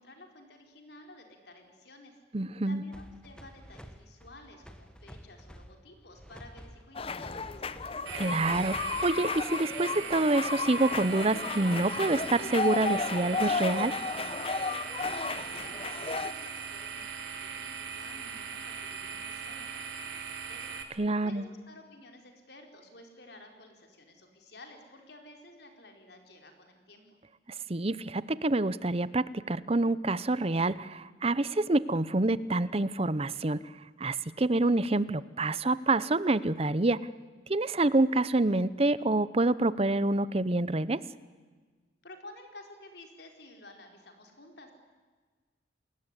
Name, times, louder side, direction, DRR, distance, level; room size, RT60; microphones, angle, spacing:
voice 1, 0.0-2.2 2.7-8.0 15.3-20.8 21.2-27.2 42.0-44.7, left 2 dB, 60° left, 4 dB, 4.6 m, -52 dB
voice 2, 2.3-2.8 8.1-14.0 21.0-21.5 27.7-33.6 34.0-37.1 37.5-41.0, right 2 dB, 30° right, 17 dB, 0.8 m, -27 dB
sound 1, 2.9-9.7, equal, 5° left, 1.4 m, -50 dB
sound 2, 6.9-16.3, left 4 dB, 30° left, 0.8 m, -34 dB
sound 3, 8.0-20.8, right 6 dB, 85° right, 3.2 m, -39 dB
28.5 x 20.5 x 9.9 m, 1.4 s
head